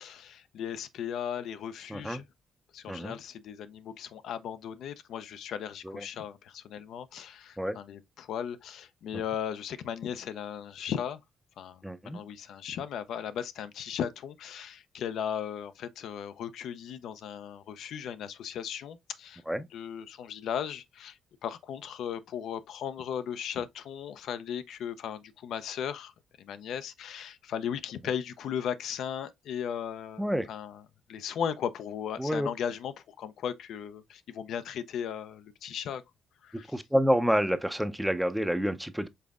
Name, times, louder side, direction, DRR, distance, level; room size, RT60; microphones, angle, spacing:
voice 1, 0.0-2.2 2.7-11.2 11.6-19.4 19.7-21.2 21.4-26.1 26.4-30.8 31.1-36.0 36.4-36.8, left 8 dB, 75° left, 0.4 m, -37 dB
voice 2, 1.9-2.2 2.9-3.1 5.9-6.0 7.6-7.8 11.8-12.2 19.5-19.7 30.2-30.5 32.2-32.5 36.7-39.1, equal, 5° right, 0.5 m, -28 dB
5.3 x 3.8 x 2.4 m
cardioid pair, 90°, 0 cm